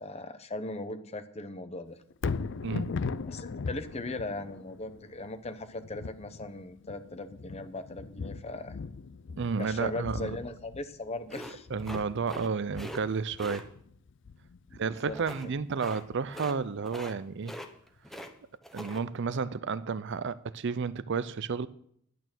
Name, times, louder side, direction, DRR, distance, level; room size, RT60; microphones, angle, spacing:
voice 1, 0.0-2.0 3.3-8.8 9.6-11.7 14.7-15.5, left 2 dB, 30° left, 0.9 m, -39 dB
Thunder, 2.1-16.3 16.8-16.9, left 4 dB, 60° left, 0.4 m, -40 dB
voice 2, 2.6-2.9 9.4-10.3 11.7-13.7 14.8-17.5 18.7-21.7, right 5 dB, 55° right, 0.5 m, -31 dB
sound 1, 11.3-12.5 12.7-13.0 13.4-13.6 15.1-15.5 15.8-16.0 16.3-16.6 16.8-17.2 17.4-18.3 18.6-19.0, equal, ahead, 0.9 m, -42 dB
11.0 x 9.1 x 6.1 m
head